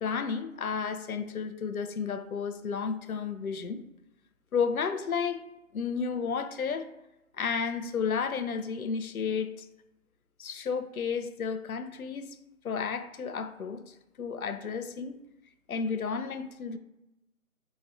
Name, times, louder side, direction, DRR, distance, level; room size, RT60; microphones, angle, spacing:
voice 1, 0.0-3.8 4.5-5.4 5.7-6.9 7.3-9.7 10.4-12.3 12.6-15.2 15.7-16.8, left 6 dB, 80° left, 9 dB, 0.6 m, -32 dB
4.0 x 3.0 x 2.4 m, 0.93 s
figure-of-eight pair, 175°, 43 cm